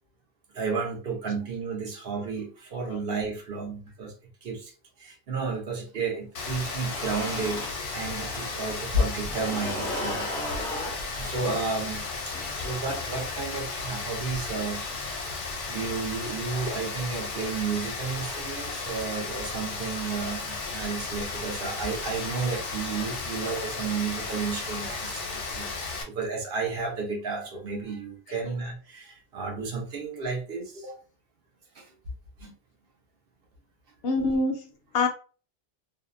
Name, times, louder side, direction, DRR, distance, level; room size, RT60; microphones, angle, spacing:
voice 1, 0.5-4.1 4.4-4.7 5.0-7.6 7.9-10.3 11.2-14.8 15.7-30.9 31.7-31.9 32.4-32.5, right 4 dB, 60° right, 0.8 m, -32 dB
Rain, 6.3-26.0, left 3 dB, 85° left, 1.0 m, -34 dB
sound 1, 6.6-8.5 8.8-13.5, equal, 5° left, 0.6 m, -36 dB
voice 2, 34.0-34.7 34.9-35.1, left 3 dB, 65° left, 0.8 m, -27 dB
2.6 x 2.0 x 2.4 m
omnidirectional pair, 1.2 m